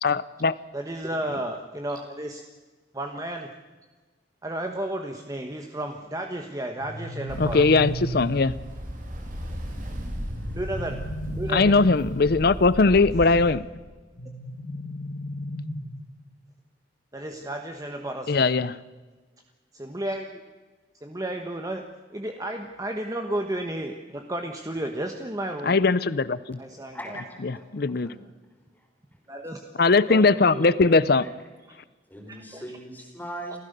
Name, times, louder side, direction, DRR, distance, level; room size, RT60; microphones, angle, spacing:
voice 1, 0.0-0.5 7.4-8.5 11.5-13.7 18.3-18.8 25.6-26.6 27.4-28.1 29.8-31.3, left 3 dB, 55° left, 17 dB, 0.6 m, -20 dB
voice 2, 0.7-2.4 2.9-3.5 4.4-7.6 10.5-11.1 11.3-11.8 17.1-18.4 19.7-20.4 21.0-25.8 26.6-27.2 29.3-29.7 30.1-30.5 32.4-32.6, right 1 dB, 20° right, 4 dB, 1.2 m, -33 dB
sound 1, 6.8-8.7 10.4-12.4 14.2-16.1, right 1 dB, 80° left, 1.8 m, -35 dB
Ocean, 7.3-13.5, equal, 45° right, 3.4 m, -35 dB
voice 3, 26.9-27.7 27.9-28.2 32.1-33.6, right 1 dB, 10° left, 2 dB, 4.2 m, -39 dB
28.5 x 15.0 x 6.8 m, 1.3 s
head